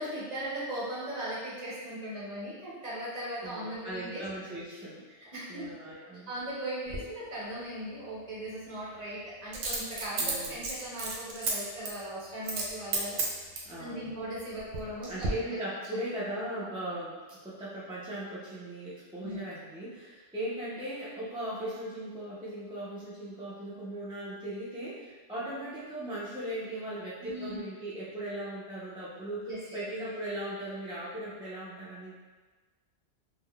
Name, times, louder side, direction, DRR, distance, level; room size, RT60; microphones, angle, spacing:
voice 1, 0.0-4.2 5.1-5.7 6.3-13.2 13.8-15.3 16.7-16.8 19.2-19.4 27.2-27.6 29.5-29.8, right 1 dB, 40° right, -9 dB, 1.0 m, -38 dB
voice 2, 3.4-5.0 5.5-6.3 10.2-10.6 13.6-14.1 15.1-32.1, right 1 dB, 10° right, -9 dB, 0.3 m, -38 dB
Coin (dropping), 6.9-7.0 9.5-11.5 11.8-12.0 12.4-12.7 12.9-13.7 14.4-14.9 15.2-15.3, right 3 dB, 75° right, 0.8 m, -32 dB
3.5 x 2.2 x 2.3 m, 1.3 s
omnidirectional pair, 1.1 m